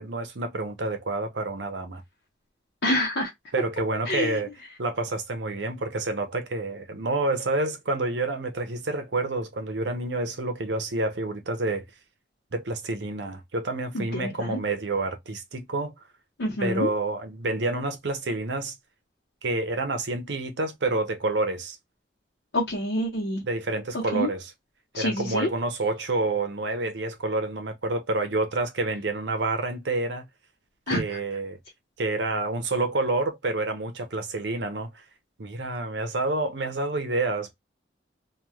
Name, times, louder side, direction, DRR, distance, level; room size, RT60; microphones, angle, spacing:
voice 1, 0.0-2.0 3.5-4.5 4.8-11.8 12.5-15.9 16.6-18.8 19.4-21.8 23.4-24.5 24.9-30.3 30.9-31.6 32.0-35.0 35.4-37.5, right 2 dB, 80° right, 0.7 m, -28 dB
voice 2, 2.8-3.3 4.1-4.4 13.9-14.6 16.4-16.9 22.5-23.4 24.1-24.3 24.9-25.5 30.9-31.0, left 1 dB, 85° left, 0.9 m, -27 dB
3.1 x 2.3 x 2.2 m
head